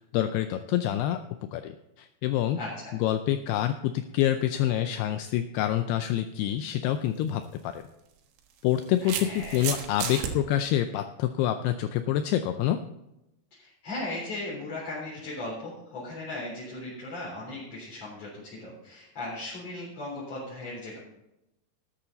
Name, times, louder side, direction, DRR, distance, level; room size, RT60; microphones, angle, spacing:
voice 1, 0.1-1.2 1.5-2.6 3.0-7.8 8.6-12.8, left 12 dB, 80° left, 8 dB, 2.4 m, -27 dB
voice 2, 2.5-2.9 9.0-9.6 13.6-21.0, left 2 dB, 35° left, -8 dB, 4.6 m, -37 dB
sound 1, 7.1-7.3 8.4-10.3, right 8 dB, 90° right, 3.7 m, -33 dB
13.5 x 10.5 x 4.0 m, 0.90 s
omnidirectional pair, 5.0 m